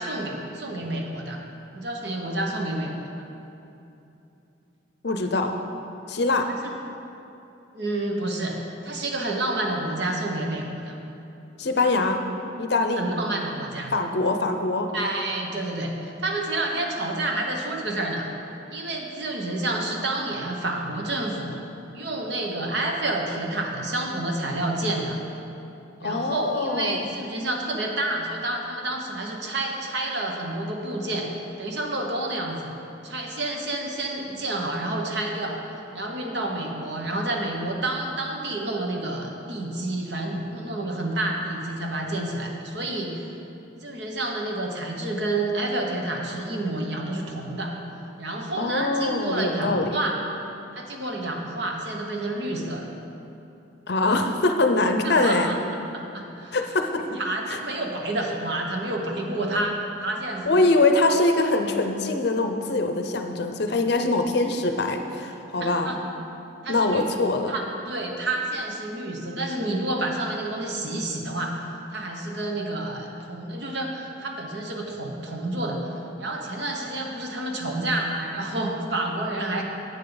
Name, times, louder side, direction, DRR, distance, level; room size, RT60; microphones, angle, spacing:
voice 1, 0.0-1.4 1.7-3.3 6.5-6.7 7.7-8.6 8.8-11.0 13.0-13.9 14.9-18.3 18.7-21.5 21.9-25.2 26.0-31.3 31.6-32.7 33.0-35.6 35.9-43.3 43.8-47.7 48.2-50.2 50.7-52.9 55.0-55.6 55.9-56.6 57.1-60.6 65.6-66.0 66.6-67.0 67.5-71.6 71.9-79.6, right 2 dB, 55° right, 1 dB, 1.1 m, -29 dB
voice 2, 5.0-5.5 6.1-6.5 11.6-12.2 12.6-13.0 13.9-14.9 26.0-27.1 48.6-50.0 53.9-55.5 56.5-57.0 57.5-57.6 60.5-65.9 66.7-67.5, left 2 dB, 55° left, 5 dB, 0.6 m, -23 dB
10.5 x 8.5 x 3.9 m, 2.9 s
head